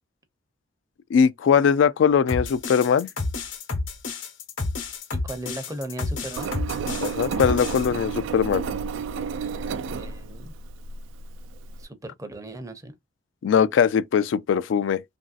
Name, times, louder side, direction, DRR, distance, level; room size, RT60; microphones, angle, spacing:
voice 1, 1.1-3.1 7.0-8.7 13.4-15.0, left 7 dB, 70° left, 0.3 m, -20 dB
sound 1, 2.3-7.9, left 3 dB, 85° left, 1.0 m, -30 dB
voice 2, 5.1-6.6 9.9-10.5 11.8-12.9, right 1 dB, 15° right, 0.6 m, -36 dB
Engine, 6.4-11.8, right 5 dB, 80° right, 0.3 m, -31 dB
3.0 x 2.6 x 2.3 m
head